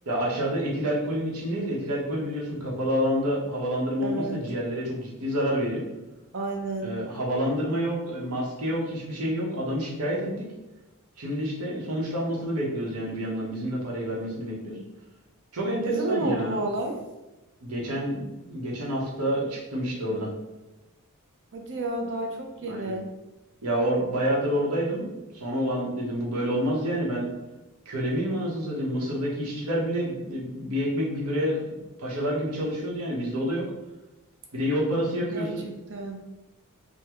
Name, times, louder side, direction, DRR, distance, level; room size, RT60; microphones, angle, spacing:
voice 1, 0.1-5.8 6.8-10.5 11.2-14.8 15.5-16.6 17.6-20.3 22.7-22.9 23.6-27.3 27.9-31.6 32.0-33.6 34.5-35.7, equal, 85° right, -4 dB, 0.9 m, -28 dB
voice 2, 4.0-4.4 6.3-6.9 15.8-17.0 21.5-23.1 35.3-35.5 35.9-36.2, right 2 dB, 55° right, 2 dB, 0.6 m, -30 dB
3.5 x 2.2 x 2.9 m, 1.0 s
head